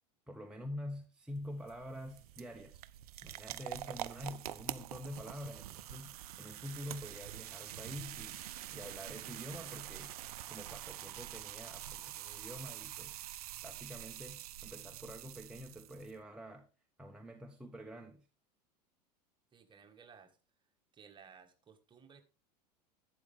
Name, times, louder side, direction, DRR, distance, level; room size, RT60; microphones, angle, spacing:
voice 1, 0.3-2.8 3.2-8.4 8.7-10.1 10.5-13.2 13.6-16.7 17.0-18.2, equal, 5° right, 1.0 m, -47 dB
sound 1, 1.3-16.2, right 13 dB, 60° right, 0.5 m, -46 dB
voice 2, 19.5-20.4 20.9-22.2, right 6 dB, 20° right, 1.6 m, -58 dB
12.0 x 8.4 x 3.5 m
figure-of-eight pair, 80°, 21 cm